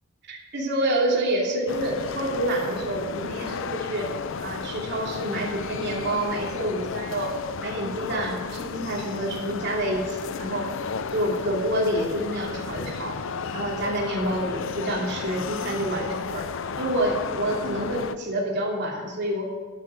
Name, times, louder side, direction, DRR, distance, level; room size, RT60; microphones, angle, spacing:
voice 1, 0.3-4.1 4.4-7.3 7.6-10.7 11.1-13.1 13.5-16.5 16.8-19.5, right 1 dB, 55° right, -3 dB, 3.0 m, -28 dB
sound 1, 1.7-18.2, left 5 dB, 65° left, 0.6 m, -33 dB
11.0 x 10.0 x 6.2 m, 1.5 s
head